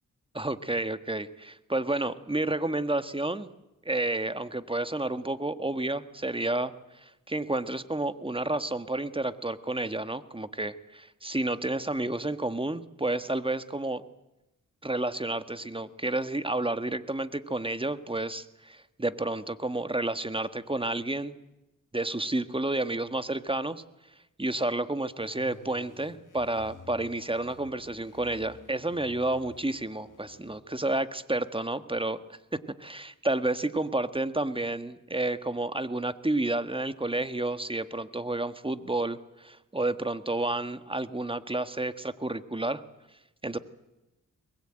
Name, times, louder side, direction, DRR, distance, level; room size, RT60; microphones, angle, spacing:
voice 1, 0.3-3.5 3.8-14.0 14.8-21.4 21.9-23.8 24.4-32.2 32.5-42.8 43.4-43.6, right 2 dB, 15° right, 11 dB, 1.6 m, -30 dB
sound 1, 25.2-30.6, left 5 dB, 70° left, 2.3 m, -53 dB
22.5 x 21.0 x 9.0 m, 0.97 s
cardioid pair, 45°, 33 cm